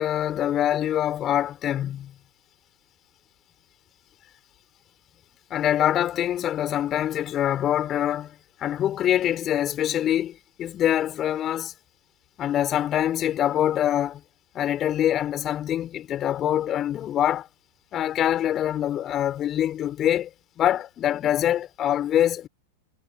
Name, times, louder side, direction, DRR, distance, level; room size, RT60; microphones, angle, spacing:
voice 1, 0.0-2.1 5.5-11.7 12.4-14.2 14.5-17.5 17.9-20.3 20.6-22.5, left 11 dB, 30° left, 6.4 m, -24 dB
figure-of-eight pair, 90°, 0 cm